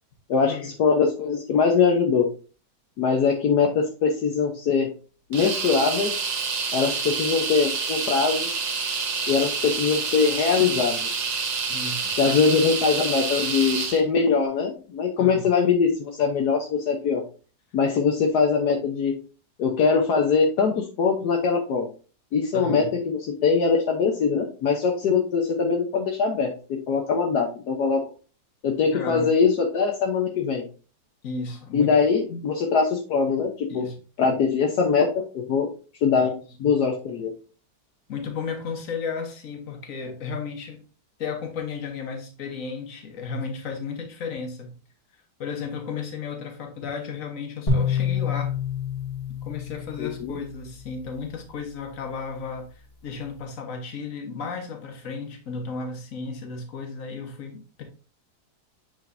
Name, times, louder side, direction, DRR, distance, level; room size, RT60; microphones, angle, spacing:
voice 1, 0.3-2.3 3.0-4.9 5.3-6.1 6.7-8.5 9.3-11.1 12.2-17.2 17.7-19.1 19.6-21.9 22.3-28.0 28.6-30.6 31.7-33.8 34.2-35.1 35.3-35.7 36.0-36.3 36.6-37.3 50.0-50.3, left 5 dB, 70° left, 1.4 m, -22 dB
sound 1, 5.3-14.0, right 5 dB, 70° right, 1.8 m, -28 dB
voice 2, 11.7-12.4 15.2-15.5 22.5-23.0 28.9-29.3 31.2-31.9 32.3-32.4 33.7-34.0 36.2-36.3 38.1-40.8 41.2-44.7 45.4-48.6 49.5-52.7 53.0-57.8, left 5 dB, 55° left, 1.6 m, -34 dB
sound 2, 47.7-50.9, left 5 dB, 20° left, 1.8 m, -27 dB
7.7 x 5.1 x 2.6 m
omnidirectional pair, 1.8 m